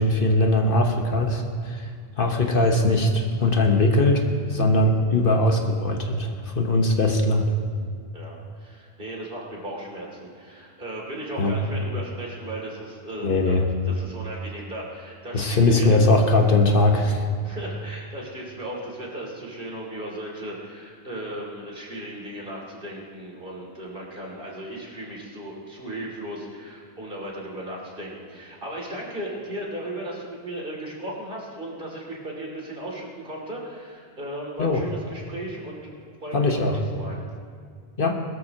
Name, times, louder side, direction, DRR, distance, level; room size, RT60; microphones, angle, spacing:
voice 1, 0.0-1.9 2.2-7.5 11.4-11.5 13.2-13.7 15.3-17.2 34.6-34.8 36.3-36.8 38.0-38.2, left 2 dB, 60° left, 3 dB, 1.3 m, -20 dB
voice 2, 8.1-13.6 13.9-15.9 17.4-35.9 36.2-37.2, right 1 dB, 55° right, -3 dB, 2.9 m, -36 dB
21.0 x 13.0 x 2.9 m, 2.1 s
omnidirectional pair, 1.1 m